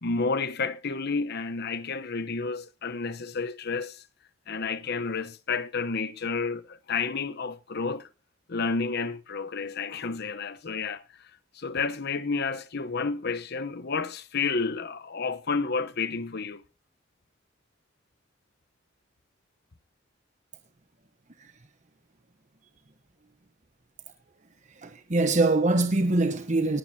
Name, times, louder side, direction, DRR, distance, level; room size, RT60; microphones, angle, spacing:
voice 1, 0.0-4.0 4.5-8.1 8.5-11.0 11.5-16.6, left 4 dB, 55° left, 1.0 m, -30 dB
voice 2, 24.8-26.8, right 2 dB, 40° right, 1.1 m, -23 dB
19.0 x 11.0 x 2.8 m
head